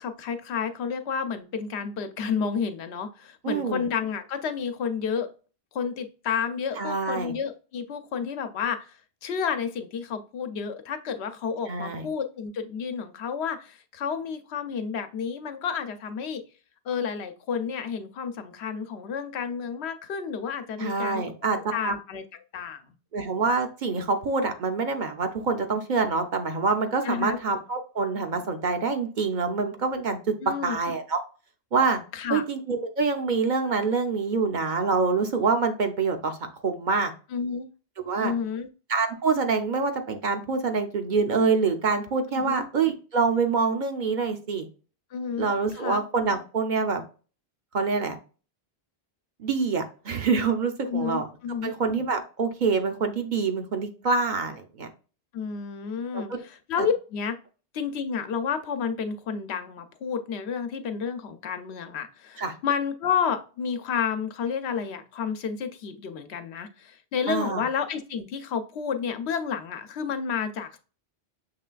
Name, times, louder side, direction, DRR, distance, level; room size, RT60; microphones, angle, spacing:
voice 1, 0.0-5.3 5.7-16.4 16.8-22.2 22.5-22.9 27.0-27.4 30.4-30.8 32.1-32.4 37.3-37.7 38.2-38.7 42.3-42.7 45.1-46.0 50.9-51.7 55.3-57.3 57.7-70.8, left 6 dB, 85° left, 8 dB, 0.9 m, -31 dB
voice 2, 3.4-3.8 6.8-7.3 11.7-12.1 20.8-21.9 23.1-30.4 30.6-31.2 31.7-32.0 32.3-37.1 38.0-38.3 38.9-44.7 45.4-47.0 47.7-48.2 49.4-51.3 51.6-54.9 56.1-56.4 62.4-62.5 67.3-67.6, right 4 dB, 55° right, 5 dB, 0.7 m, -26 dB
6.6 x 3.2 x 2.3 m, 0.37 s
omnidirectional pair, 1.1 m